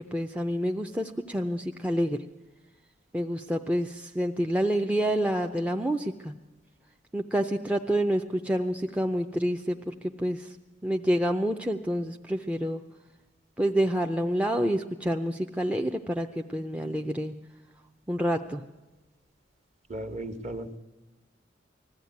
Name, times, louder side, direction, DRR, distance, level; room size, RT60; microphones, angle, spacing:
voice 1, 0.0-2.2 3.1-6.3 7.1-10.6 10.8-12.8 13.6-17.3 18.1-18.6, equal, 5° right, 2 dB, 0.6 m, -28 dB
voice 2, 19.9-20.8, right 1 dB, 35° right, 8 dB, 1.3 m, -36 dB
20.0 x 14.5 x 9.4 m, 1.1 s
head